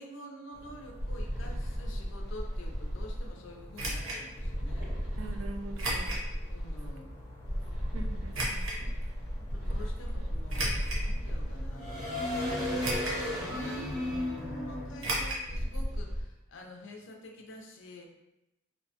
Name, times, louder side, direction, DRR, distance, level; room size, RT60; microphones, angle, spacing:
voice 1, 0.0-4.9 6.5-7.1 9.5-12.9 13.3-18.1, left 1 dB, 65° left, 2 dB, 0.4 m, -48 dB
sound 1, 0.5-14.9, equal, 10° left, 0.5 m, -47 dB
sound 2, 1.0-3.3 4.4-6.9 7.4-16.2, equal, 15° right, 0.8 m, -34 dB
sound 3, 3.7-4.2 5.8-6.3 6.8-6.9 8.3-8.8 10.5-11.1 11.7-11.8 12.8-13.3 13.6-13.7 15.0-15.5 15.7-15.8 16.1-16.2, right 1 dB, 85° right, 0.7 m, -33 dB
voice 2, 5.1-6.2 7.9-9.2 9.7-9.9, right 3 dB, 65° right, 4 dB, 0.3 m, -44 dB
2.7 x 2.1 x 2.7 m, 0.91 s
head